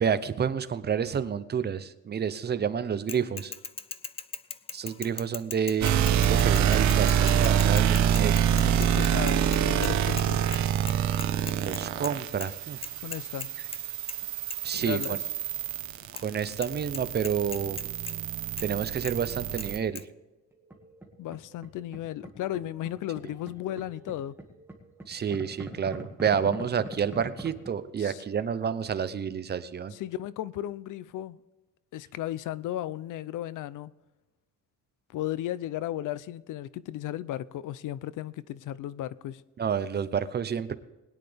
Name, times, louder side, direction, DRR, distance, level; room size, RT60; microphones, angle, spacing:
voice 1, 0.0-3.5 4.7-8.4 11.6-12.8 14.6-15.2 16.2-17.8 18.6-20.1 25.1-29.9 39.6-40.7, right 7 dB, 30° right, 0.7 m, -29 dB
Bicycle / Mechanisms, 3.1-10.3 10.5-10.6 10.9-12.1 12.4-12.5 12.8-13.8 14.1-14.2 14.5-14.6 15.0-15.1 16.2-16.3 16.6-16.7 16.9-18.1 18.6-18.7 19.0-19.2 19.6-19.7 20.0-20.1, left 5 dB, 20° left, 0.4 m, -38 dB
sound 1, 5.8-19.8, right 9 dB, 60° right, 1.0 m, -26 dB
voice 2, 8.5-10.4 13.0-13.5 14.7-15.2 21.2-24.3 28.0-28.2 29.9-31.4 31.9-33.9 35.1-39.4, left 13 dB, 75° left, 0.6 m, -35 dB
sound 2, 20.5-21.7 21.9-27.7, right 1 dB, 5° right, 1.9 m, -43 dB
21.0 x 9.9 x 3.4 m
cardioid pair, 155°, 31 cm